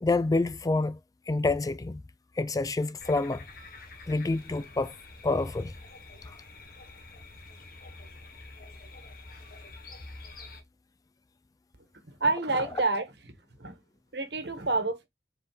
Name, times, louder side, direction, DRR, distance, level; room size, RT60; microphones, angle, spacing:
voice 1, 0.0-1.0 1.3-2.0 2.4-3.4 4.1-4.9 5.2-5.7, left 3 dB, 20° left, 0.3 m, -27 dB
sound 1, 3.0-10.6, left 2 dB, 55° left, 1.5 m, -47 dB
voice 2, 12.1-13.1 13.6-13.8 14.1-15.1, right 3 dB, 65° right, 1.8 m, -28 dB
7.2 x 4.7 x 3.4 m
head